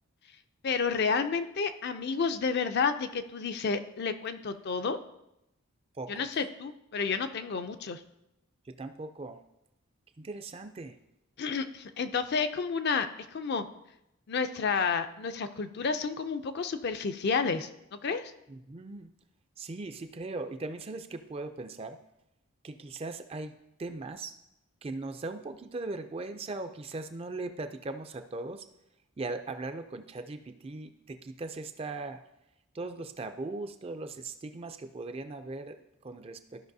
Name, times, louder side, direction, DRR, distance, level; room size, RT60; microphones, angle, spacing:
voice 1, 0.6-5.0 6.1-8.0 11.4-13.6 14.3-18.3, left 5 dB, 50° left, 9 dB, 0.4 m, -30 dB
voice 2, 6.0-6.3 8.7-9.4 10.2-11.0 18.5-19.1 19.6-22.0 22.6-23.5 23.8-24.3 24.8-28.6 29.2-32.2 32.7-36.7, right 3 dB, 25° right, 9 dB, 0.4 m, -39 dB
13.5 x 5.4 x 2.7 m, 0.85 s
head